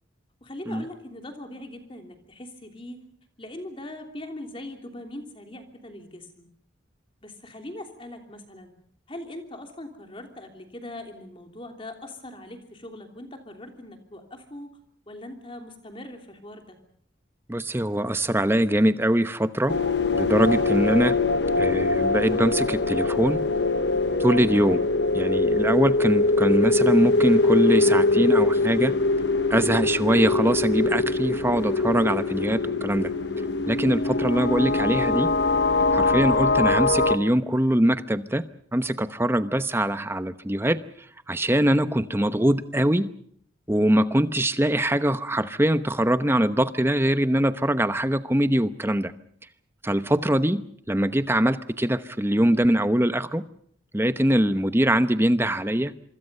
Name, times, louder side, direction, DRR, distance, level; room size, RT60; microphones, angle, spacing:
voice 1, 0.4-3.0 3.4-6.5 7.2-8.7 9.1-14.7 15.1-16.8, left 1 dB, 30° left, 4 dB, 3.1 m, -41 dB
voice 2, 17.5-19.7 20.1-21.1 21.6-23.4 24.2-24.8 25.1-28.9 29.5-33.1 33.7-35.3 35.9-38.4 38.7-40.8 41.3-43.1 43.7-49.1 49.8-53.4 53.9-55.9, right 1 dB, 15° right, 11 dB, 0.9 m, -23 dB
sound 1, 19.7-37.2, left 3 dB, 65° left, 1.2 m, -23 dB
26.5 x 24.5 x 5.5 m, 0.65 s
head